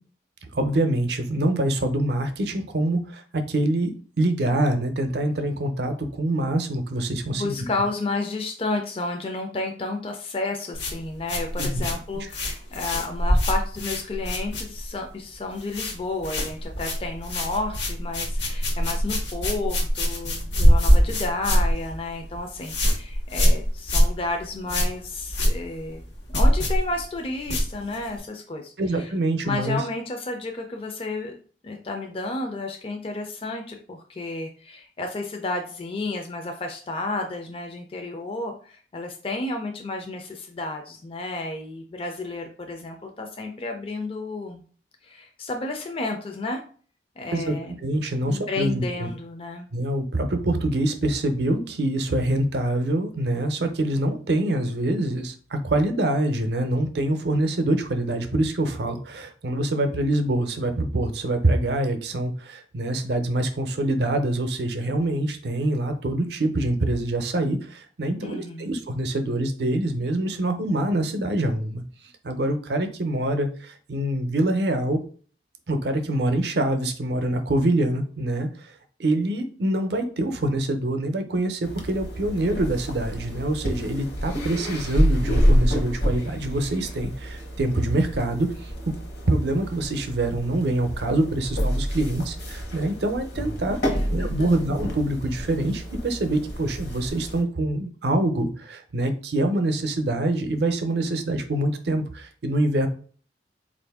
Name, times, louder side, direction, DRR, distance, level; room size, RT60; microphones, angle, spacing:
voice 1, 0.5-7.5 11.6-11.8 12.2-12.3 28.8-29.8 47.3-49.1 49.7-71.8 72.2-75.0 75.7-78.7 79.0-88.7 89.3-93.8 94.1-102.9, right 1 dB, 65° right, 7 dB, 0.6 m, -25 dB
voice 2, 7.4-26.0 26.3-28.7 29.0-29.1 29.4-31.3 31.6-44.6 45.0-46.6 47.2-47.7 48.3-49.7 68.2-68.7 93.8-94.7, left 2 dB, 30° left, 3 dB, 0.4 m, -31 dB
sound 1, 10.7-15.1 15.3-16.0 16.2-28.2, equal, 85° left, 1.1 m, -23 dB
sound 2, 81.6-97.4, equal, 60° left, 0.9 m, -28 dB
4.1 x 2.5 x 3.4 m, 0.43 s
head